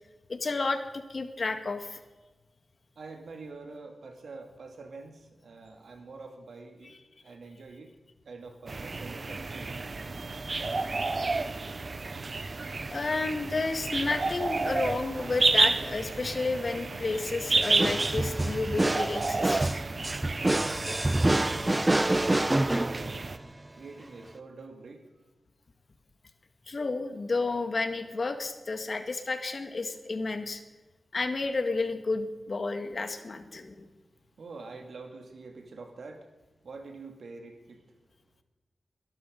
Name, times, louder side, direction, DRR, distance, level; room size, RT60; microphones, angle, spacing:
voice 1, 0.3-2.0 12.9-19.7 26.7-30.6 31.1-33.9, left 3 dB, 55° left, 7 dB, 2.0 m, -31 dB
voice 2, 3.0-6.9 7.2-8.0 8.2-10.1 20.4-23.3 23.7-25.0 34.4-36.3 36.6-37.9, right 3 dB, 80° right, 4 dB, 2.6 m, -45 dB
sound 1, 8.7-23.4, right 3 dB, 50° right, 1.0 m, -31 dB
sound 2, 17.6-23.5, right 1 dB, 25° right, 0.5 m, -27 dB
22.0 x 12.0 x 5.4 m, 1.2 s
cardioid pair, 45°, 0 cm